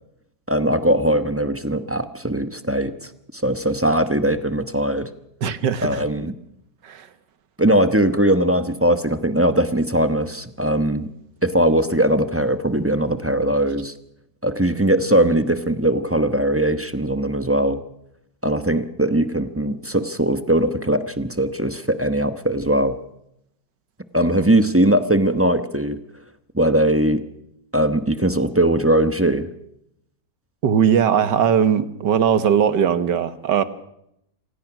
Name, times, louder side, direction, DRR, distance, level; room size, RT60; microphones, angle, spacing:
voice 1, 0.5-5.1 5.8-6.3 7.6-11.1 11.4-13.9 14.4-17.8 18.4-23.0 24.1-26.0 26.5-27.2 27.7-29.5, right 1 dB, 10° right, 11 dB, 0.7 m, -20 dB
voice 2, 5.4-6.0 6.8-7.1 30.6-33.6, right 8 dB, 80° right, 13 dB, 1.9 m, -19 dB
26.5 x 17.0 x 6.0 m, 0.77 s
omnidirectional pair, 1.9 m